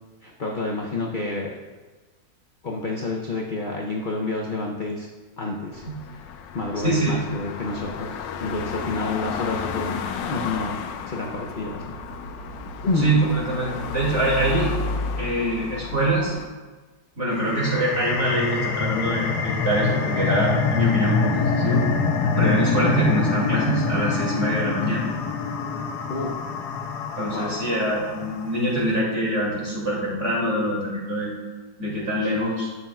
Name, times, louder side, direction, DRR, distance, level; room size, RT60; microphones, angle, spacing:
voice 1, 0.2-1.6 2.6-5.1 5.4-5.9 6.5-8.1 8.4-10.8 11.1-11.9 12.8-13.1 26.1-26.3 27.3-27.5 32.4-32.5, left 2 dB, 50° left, -1 dB, 0.6 m, -29 dB
sound 1, 5.7-16.5, left 4 dB, 90° left, 1.3 m, -32 dB
voice 2, 6.8-7.2 13.0-14.7 15.2-16.4 17.2-21.8 22.4-25.0 27.2-31.3 31.8-32.7, right 1 dB, 40° right, -5 dB, 2.8 m, -24 dB
sound 2, 17.3-28.5, left 5 dB, 70° left, 1.3 m, -25 dB
11.5 x 8.1 x 2.4 m, 1.3 s
omnidirectional pair, 1.9 m